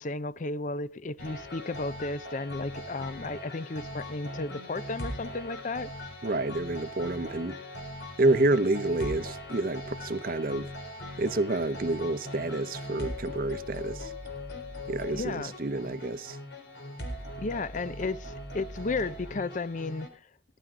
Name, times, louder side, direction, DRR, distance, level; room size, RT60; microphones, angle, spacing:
voice 1, 0.0-5.9 15.1-15.5 17.4-20.1, left 3 dB, 45° left, 0.6 m, -33 dB
sound 1, 1.2-20.1, left 1 dB, 80° left, 4.0 m, -40 dB
voice 2, 6.2-7.6 8.2-10.7 11.2-14.1 14.9-16.4, right 2 dB, 50° right, 0.8 m, -28 dB
18.0 x 12.0 x 3.7 m
head